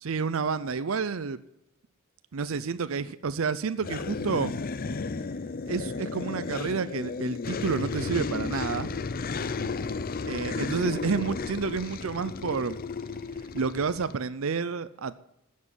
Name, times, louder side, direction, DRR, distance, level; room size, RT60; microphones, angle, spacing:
voice 1, 0.0-1.4 2.3-4.5 5.7-8.9 10.3-12.8 13.5-15.1, right 5 dB, 75° right, 14 dB, 0.6 m, -29 dB
sound 1, 3.8-14.2, left 4 dB, 45° left, 0.6 m, -33 dB
12.5 x 7.5 x 7.4 m, 0.82 s
head